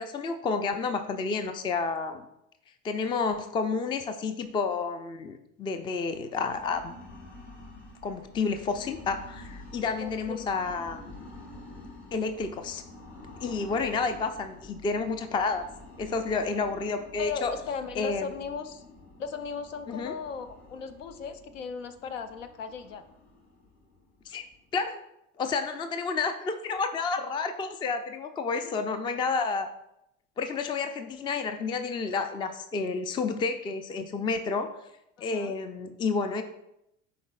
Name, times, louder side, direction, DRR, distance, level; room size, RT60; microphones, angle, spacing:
voice 1, 0.0-2.2 2.8-6.9 8.0-11.1 12.1-12.8 13.4-15.7 16.0-17.5 18.0-18.3 19.9-20.1 24.3-24.4 24.7-25.0 25.4-29.7 30.4-34.7 35.2-36.4, left 4 dB, 15° left, 9 dB, 0.4 m, -30 dB
sound 1, 6.1-24.8, left 2 dB, 45° left, 1.8 m, -49 dB
voice 2, 10.0-10.5 17.2-18.8 19.2-23.0 28.6-28.8 35.2-35.6, left 6 dB, 70° left, 10 dB, 0.7 m, -37 dB
10.0 x 4.1 x 2.3 m, 0.81 s
figure-of-eight pair, 65°, 39 cm